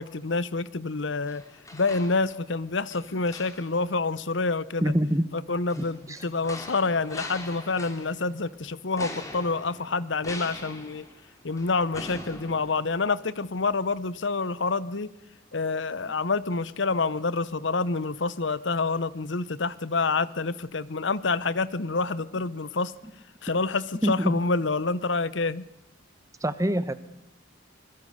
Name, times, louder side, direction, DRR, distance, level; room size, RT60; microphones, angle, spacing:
voice 1, 0.0-1.4 1.7-4.9 5.3-11.0 11.4-15.1 15.5-22.9 23.4-25.7, left 3 dB, 65° left, 18 dB, 0.9 m, -27 dB
sound 1, 1.3-2.6 2.9-3.9 5.7-8.4 9.0-13.3 13.7-13.8, left 1 dB, 15° left, 3.1 m, -42 dB
voice 2, 4.8-5.2 5.8-6.2 24.0-24.3 26.4-26.9, equal, 15° right, 13 dB, 1.1 m, -25 dB
25.0 x 21.5 x 6.7 m, 0.83 s
head